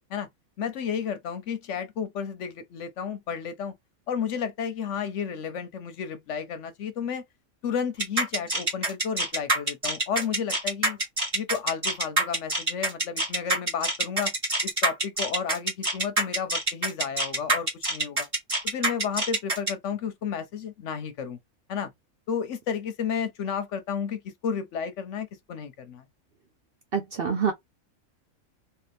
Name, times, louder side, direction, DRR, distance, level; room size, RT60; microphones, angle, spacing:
voice 1, 0.6-3.7 4.1-7.2 7.6-11.0 11.3-14.3 14.6-18.3 18.6-21.4 21.7-21.9 22.3-26.0, left 7 dB, 65° left, 0.9 m, -32 dB
sound 1, 8.0-19.7, right 2 dB, 25° right, 1.2 m, -25 dB
voice 2, 26.9-27.5, right 6 dB, 55° right, 0.7 m, -26 dB
2.9 x 2.8 x 3.3 m
omnidirectional pair, 1.5 m